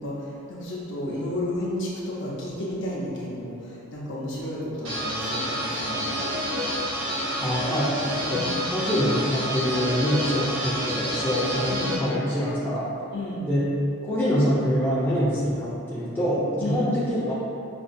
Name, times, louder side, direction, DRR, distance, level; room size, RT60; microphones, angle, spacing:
voice 1, 0.0-6.1 8.3-8.6 11.6-12.0 13.1-13.4 16.6-16.9, left 1 dB, 55° left, -6 dB, 0.7 m, -32 dB
sound 1, 4.8-12.0, equal, 65° right, 0.9 m, -28 dB
voice 2, 7.4-8.0 8.3-12.9 13.5-13.7 14.0-17.3, equal, 10° left, -10 dB, 0.5 m, -25 dB
5.1 x 2.3 x 2.6 m, 2.7 s
head